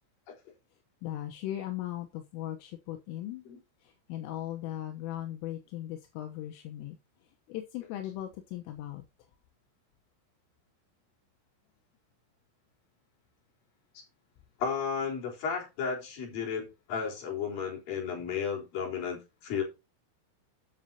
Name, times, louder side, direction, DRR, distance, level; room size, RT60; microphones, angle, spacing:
voice 1, 1.0-3.4 4.1-7.0 7.5-9.0, left 13 dB, 80° left, 3.6 m, -38 dB
voice 2, 14.6-19.6, left 6 dB, 45° left, 5.3 m, -33 dB
13.0 x 8.8 x 2.9 m
omnidirectional pair, 6.0 m